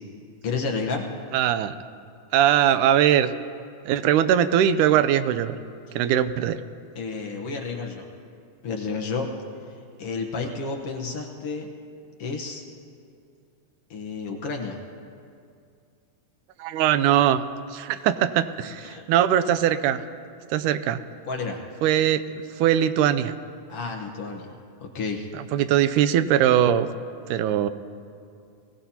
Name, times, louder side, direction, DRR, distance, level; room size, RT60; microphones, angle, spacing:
voice 1, 0.4-1.1 7.0-8.1 8.6-9.3 10.0-11.7 12.2-12.6 13.9-14.8 18.8-19.0 21.3-21.6 23.7-24.5 24.8-25.3, left 4 dB, 60° left, 1 dB, 1.8 m, -31 dB
voice 2, 1.3-1.8 2.3-3.3 3.8-5.6 6.0-6.6 16.6-17.4 17.7-20.0 20.5-21.0 21.8-22.2 22.6-23.3 25.5-26.9 27.3-27.7, right 10 dB, 90° right, 12 dB, 2.1 m, -21 dB
22.0 x 18.0 x 2.8 m, 2.4 s
omnidirectional pair, 3.5 m